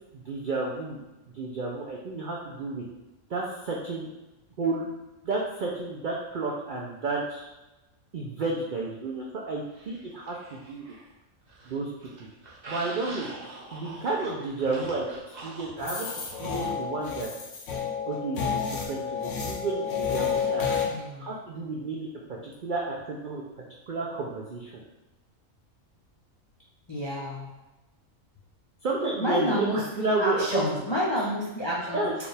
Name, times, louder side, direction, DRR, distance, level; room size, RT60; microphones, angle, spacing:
voice 1, 0.1-1.0 1.3-2.8 3.3-4.1 4.6-4.9 5.2-7.5 8.1-10.9 11.6-11.9 12.2-12.3 12.7-13.3 13.7-16.1 16.4-17.3 18.1-20.8 21.2-22.1 22.4-23.4 23.9-24.7 28.8-29.7 30.0-30.8 31.9-32.2, right 3 dB, 75° right, -2 dB, 0.4 m, -31 dB
sound 1, 9.7-11.1 11.4-16.8, right 2 dB, 35° right, 0.8 m, -44 dB
sound 2, 15.8-20.9, left 6 dB, 65° left, 0.9 m, -30 dB
voice 2, 20.9-21.3 26.9-27.5 29.2-32.0, left 1 dB, 40° left, -6 dB, 0.4 m, -29 dB
4.9 x 2.3 x 3.2 m, 1.0 s
omnidirectional pair, 1.4 m